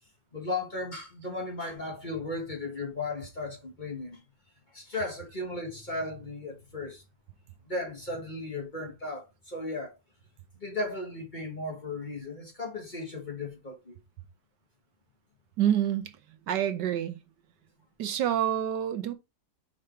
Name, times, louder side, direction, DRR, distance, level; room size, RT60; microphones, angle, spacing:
voice 1, 0.3-4.2 4.7-7.0 7.6-10.0 10.6-14.0, left 2 dB, 25° left, 1.4 m, -36 dB
voice 2, 15.6-16.1 16.5-17.2 18.0-19.1, right 10 dB, 75° right, 1.3 m, -27 dB
4.9 x 4.5 x 4.4 m
omnidirectional pair, 2.0 m